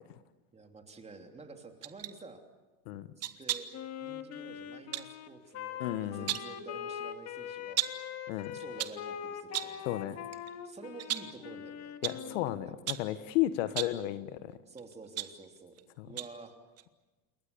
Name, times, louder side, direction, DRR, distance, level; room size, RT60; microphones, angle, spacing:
voice 1, 0.5-2.4 3.2-3.7 4.0-7.9 8.5-9.8 10.6-11.9 12.2-12.8 14.7-15.8 16.1-16.5, right 3 dB, 15° right, 5 dB, 3.0 m, -50 dB
sound 1, 1.8-2.2 3.2-3.8 4.9-5.1 6.0-6.6 7.8-8.1 8.6-9.1 9.5-9.8 10.3-10.5 11.0-11.4 12.0-12.3 12.9-13.2 13.7-14.0 14.8-15.8 16.2-16.4 16.8-16.9, right 13 dB, 40° right, 1.4 m, -36 dB
Wind instrument woodwind instrument, 3.7-12.7, left 9 dB, 40° left, 1.9 m, -42 dB
voice 2, 5.8-6.3 8.3-8.5 9.8-10.2 12.0-14.5 16.0-16.1, left 14 dB, 70° left, 13 dB, 1.4 m, -33 dB
28.0 x 22.0 x 6.9 m, 1.2 s
supercardioid pair, 125°, 40 cm